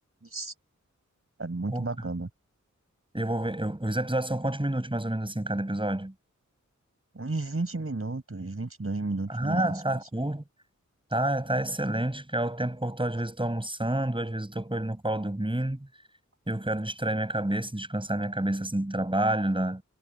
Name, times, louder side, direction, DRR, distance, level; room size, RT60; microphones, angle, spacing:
voice 1, 0.2-0.5 1.4-2.3 7.1-9.7, right 3 dB, 45° right, 5.8 m, -32 dB
voice 2, 3.1-6.1 9.3-10.4 11.1-15.9 16.5-19.8, right 1 dB, 15° right, 7.4 m, -29 dB
wide cardioid pair, 75°, 30 cm